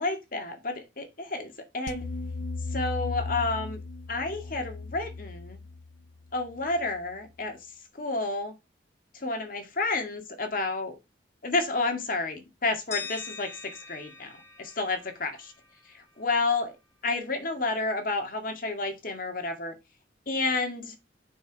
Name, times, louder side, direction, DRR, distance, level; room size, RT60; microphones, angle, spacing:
voice 1, 0.0-2.1 2.7-3.8 4.1-5.6 6.3-7.6 7.9-8.5 9.1-11.0 11.4-14.3 14.6-15.5 15.9-16.7 17.0-19.8 20.3-20.9, left 3 dB, 50° left, 2.0 m, -30 dB
sound 1, 1.9-7.1, left 3 dB, 80° left, 0.5 m, -37 dB
sound 2, 12.9-15.8, left 6 dB, 15° left, 2.0 m, -42 dB
7.1 x 5.8 x 4.6 m
head